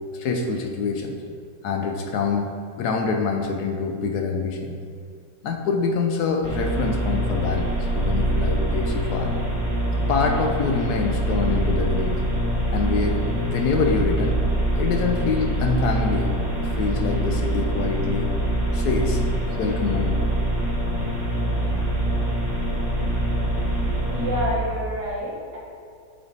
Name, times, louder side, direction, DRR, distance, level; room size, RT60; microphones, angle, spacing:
voice 1, 0.1-1.2 1.6-4.8 5.4-9.3 10.1-12.2 12.7-13.2 13.5-14.4 14.7-18.3 18.7-19.2 19.6-20.2, left 4 dB, 70° left, 3 dB, 1.1 m, -25 dB
sound 1, 6.4-24.5, right 1 dB, 20° right, 1.2 m, -24 dB
voice 2, 24.1-25.6, equal, 70° right, -5 dB, 2.0 m, -28 dB
7.9 x 3.6 x 3.9 m, 2.2 s
omnidirectional pair, 1.9 m